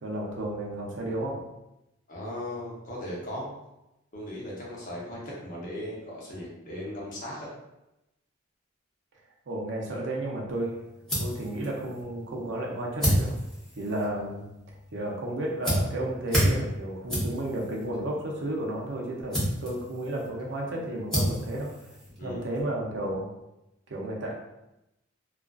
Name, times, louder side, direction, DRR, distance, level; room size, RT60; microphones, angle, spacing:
voice 1, 0.0-1.4 9.5-10.8 11.2-13.4 13.8-14.5 14.9-21.7 22.2-23.3 23.9-24.3, right 1 dB, 65° right, -2 dB, 0.5 m, -32 dB
voice 2, 2.1-3.5 4.1-7.5 22.2-22.5, left 1 dB, 45° left, -5 dB, 0.7 m, -37 dB
sound 1, 10.5-22.6, equal, 5° left, 0.8 m, -32 dB
2.4 x 2.3 x 2.3 m, 0.92 s
head